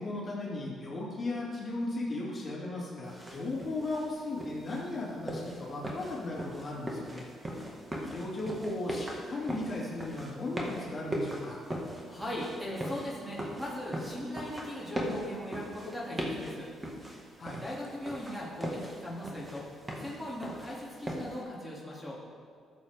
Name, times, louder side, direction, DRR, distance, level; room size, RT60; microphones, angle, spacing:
voice 1, 0.0-7.2 8.0-11.6 17.4-17.6, left 2 dB, 35° left, -5 dB, 2.6 m, -36 dB
sound 1, 3.0-21.4, equal, 20° right, 1.8 m, -40 dB
voice 2, 12.1-16.7 17.1-17.3 17.6-22.2, left 1 dB, ahead, -6 dB, 2.6 m, -39 dB
13.5 x 7.3 x 3.6 m, 2.1 s
cardioid pair, 90°, 0 cm